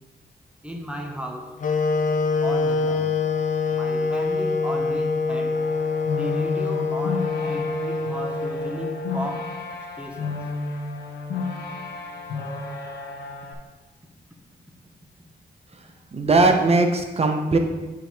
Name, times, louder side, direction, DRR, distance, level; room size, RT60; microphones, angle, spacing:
voice 1, 0.6-1.6 2.4-3.1 3.7-5.7 6.1-9.6 10.0-10.4, equal, 5° right, 2 dB, 1.0 m, -35 dB
sound 1, 1.6-9.6, left 4 dB, 50° left, 0.7 m, -25 dB
sound 2, 5.5-13.5, left 3 dB, 85° left, 0.8 m, -33 dB
voice 2, 16.1-17.6, right 3 dB, 35° right, 5 dB, 0.8 m, -19 dB
7.6 x 4.8 x 3.4 m, 1.2 s
cardioid pair, 95°, 17 cm